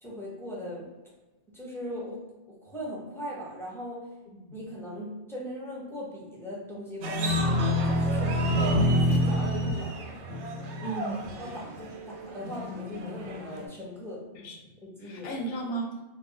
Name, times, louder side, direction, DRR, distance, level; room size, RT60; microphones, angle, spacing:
voice 1, 0.0-0.9 1.5-2.2 2.5-4.0 4.5-10.1 11.4-14.3 14.8-15.4, equal, 5° left, -5 dB, 0.3 m, -39 dB
sound 1, 7.0-13.7, equal, 80° right, 0.9 m, -28 dB
voice 2, 10.8-11.5 14.3-14.6 15.0-15.9, right 2 dB, 65° left, 1 dB, 0.8 m, -35 dB
2.3 x 2.2 x 3.7 m, 1.1 s
omnidirectional pair, 1.2 m